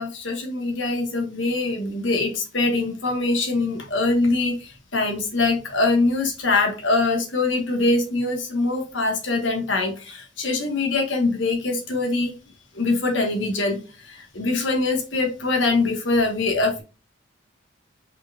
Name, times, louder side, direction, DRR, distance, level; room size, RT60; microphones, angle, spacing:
voice 1, 0.0-12.4 12.7-13.8 14.0-16.8, left 3 dB, 70° left, 1.4 m, -23 dB
5.4 x 4.1 x 2.4 m
head